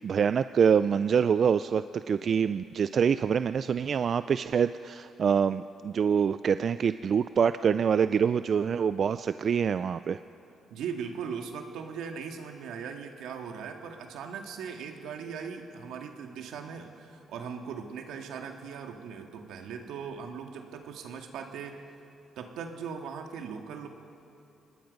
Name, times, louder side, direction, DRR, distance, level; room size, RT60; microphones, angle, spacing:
voice 1, 0.0-10.2, right 7 dB, 50° right, 13 dB, 0.4 m, -25 dB
voice 2, 10.7-21.8 22.4-23.9, right 6 dB, 85° right, 4 dB, 1.9 m, -39 dB
25.5 x 19.5 x 5.3 m, 2.7 s
cardioid pair, 90°, 0 cm